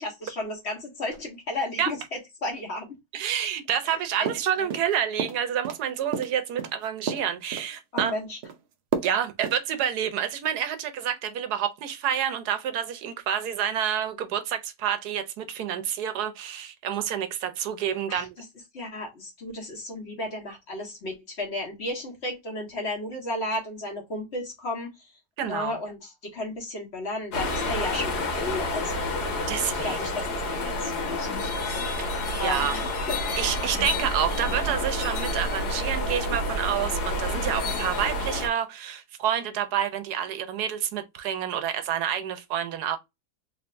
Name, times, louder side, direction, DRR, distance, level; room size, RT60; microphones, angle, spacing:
voice 1, 0.0-2.9 3.8-4.3 4.6-4.7 7.9-8.4 18.1-18.3 18.7-25.1 25.4-29.3 29.8-31.5 31.9-33.2 33.7-33.9, left 1 dB, 45° left, 1.5 m, -34 dB
voice 2, 3.1-8.1 9.0-18.3 25.4-25.7 29.5-30.0 32.0-32.1 32.4-32.7 33.4-43.0, right 9 dB, 80° right, 1.2 m, -28 dB
sound 1, 4.3-4.9 5.2-5.8 6.1-7.7 8.0-8.6 8.9-9.2 9.4-9.6, right 6 dB, 60° right, 0.7 m, -31 dB
sound 2, 27.3-38.5, left 1 dB, 85° left, 1.7 m, -29 dB
3.4 x 3.4 x 2.5 m
omnidirectional pair, 1.7 m